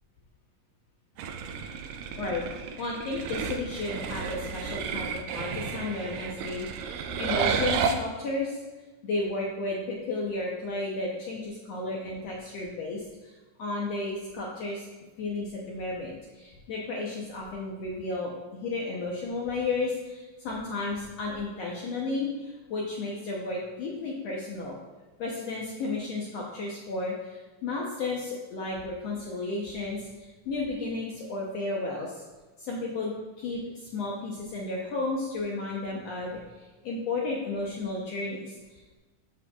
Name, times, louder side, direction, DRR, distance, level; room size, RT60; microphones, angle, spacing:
sound 1, 1.2-8.0, right 6 dB, 90° right, 2.3 m, -32 dB
voice 1, 2.2-5.1 5.3-8.6 9.0-13.3 13.6-14.9 15.2-24.7 25.2-32.2 32.6-39.0, left 3 dB, 70° left, -3 dB, 1.6 m, -33 dB
12.5 x 6.5 x 2.4 m, 1.2 s
omnidirectional pair, 3.8 m